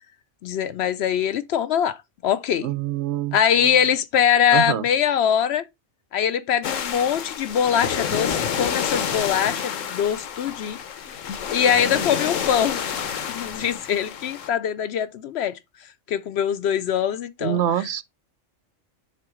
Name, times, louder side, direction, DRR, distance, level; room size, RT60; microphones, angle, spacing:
voice 1, 0.4-2.0 2.2-2.7 3.3-5.6 6.1-10.8 11.5-13.0 13.3-15.5 16.1-17.6, left 8 dB, 65° left, 0.7 m, -22 dB
voice 2, 2.6-3.7 4.5-4.8 17.4-18.0, right 11 dB, 70° right, 0.8 m, -26 dB
sound 1, 6.6-14.5, left 7 dB, 85° left, 1.2 m, -28 dB
6.8 x 3.7 x 4.9 m
omnidirectional pair, 1.3 m